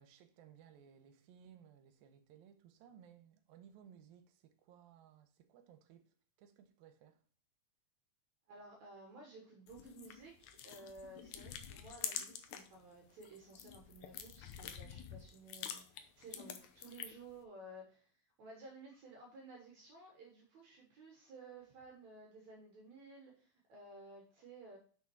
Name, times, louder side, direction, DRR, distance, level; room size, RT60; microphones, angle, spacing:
voice 1, 0.0-7.2, right 8 dB, 80° right, 2.6 m, -61 dB
voice 2, 8.5-24.8, right 2 dB, 60° right, 2.3 m, -55 dB
sound 1, 9.7-12.8 13.1-17.3, left 9 dB, 75° left, 1.7 m, -47 dB
6.2 x 6.0 x 4.5 m
omnidirectional pair, 4.2 m